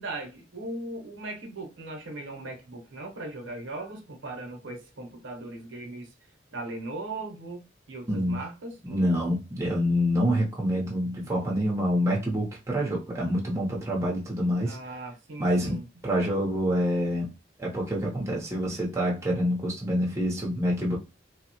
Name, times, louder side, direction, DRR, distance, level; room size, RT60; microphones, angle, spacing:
voice 1, 0.0-6.1 6.5-8.8 14.6-15.9, right 2 dB, 70° right, 0.8 m, -38 dB
voice 2, 8.1-8.4 8.8-14.8 15.4-17.3 17.6-21.0, equal, 15° right, 0.7 m, -27 dB
3.1 x 2.0 x 2.9 m
head